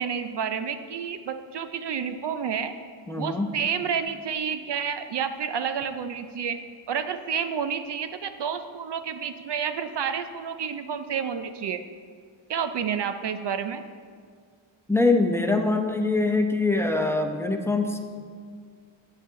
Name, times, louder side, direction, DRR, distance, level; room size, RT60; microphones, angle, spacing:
voice 1, 0.0-2.7 3.2-6.6 6.9-11.8 12.5-13.8, right 7 dB, 55° right, 9 dB, 0.6 m, -30 dB
voice 2, 3.1-3.5 14.9-18.0, left 3 dB, 5° left, 3 dB, 0.8 m, -23 dB
8.5 x 8.4 x 3.7 m, 2.1 s
cardioid pair, 65°, 50 cm